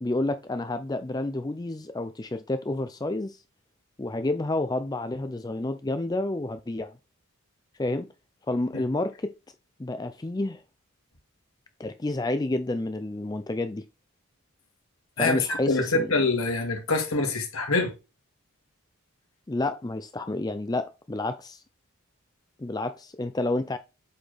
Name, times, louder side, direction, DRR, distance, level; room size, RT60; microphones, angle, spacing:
voice 1, 0.0-3.4 4.0-6.9 7.8-8.1 8.5-9.3 9.8-10.6 11.8-13.8 15.2-16.1 19.5-21.6 22.6-23.8, left 2 dB, 20° left, 0.4 m, -29 dB
voice 2, 15.2-17.9, left 3 dB, 75° left, 2.1 m, -25 dB
7.7 x 4.4 x 3.3 m
head